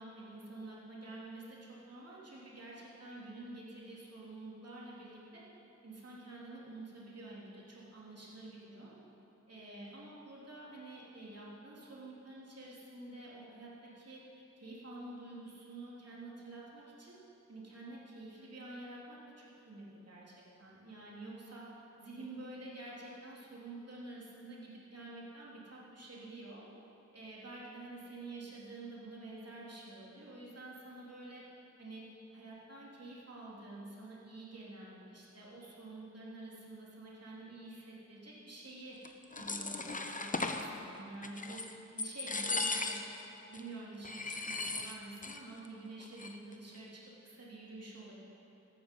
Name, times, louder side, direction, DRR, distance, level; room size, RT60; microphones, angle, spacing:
voice 1, 0.0-5.4 5.8-8.9 9.5-17.2 17.5-21.6 22.0-26.6 27.1-31.4 31.8-32.0 32.3-39.0 39.4-41.6 41.9-43.0 43.5-48.2, right 2 dB, 55° right, -6 dB, 3.4 m, -49 dB
sound 1, 39.0-40.7 41.2-41.7 42.0-43.2 43.5-43.6 44.0-45.4 45.6-45.7 46.0-46.5, left 3 dB, 25° left, 0.8 m, -37 dB
15.0 x 12.5 x 5.5 m, 3.0 s
wide cardioid pair, 100°, 30 cm